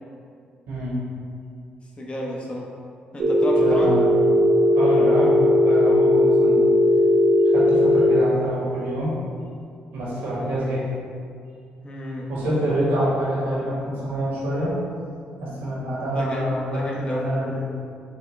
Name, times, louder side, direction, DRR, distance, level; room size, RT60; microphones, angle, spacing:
voice 1, 0.7-1.0 3.5-4.1 4.7-6.7 7.4-9.1 9.9-10.8 12.3-14.7 15.4-17.7, equal, 85° right, -6 dB, 1.2 m, -26 dB
voice 2, 2.0-2.7 3.1-4.0 11.8-12.3 16.1-17.3, left 1 dB, 35° left, -2 dB, 0.7 m, -31 dB
Telephone, 3.2-8.2, left 1 dB, 60° right, 0.5 m, -17 dB
4.2 x 2.3 x 3.2 m, 2.3 s
cardioid pair, 75°, 3 cm